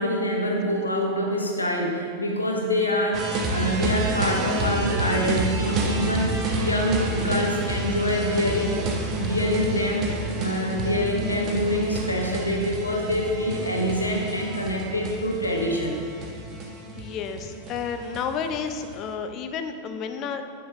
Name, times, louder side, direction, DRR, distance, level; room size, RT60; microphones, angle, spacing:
voice 1, 0.0-8.8 9.1-10.0 10.3-16.0, equal, 80° left, 0 dB, 0.8 m, -25 dB
sound 1, 3.1-19.0, right 2 dB, 35° right, 0.7 m, -29 dB
voice 2, 17.0-20.5, left 6 dB, 35° left, 8 dB, 0.4 m, -31 dB
7.0 x 4.6 x 3.2 m, 2.3 s
figure-of-eight pair, 90°, 0 cm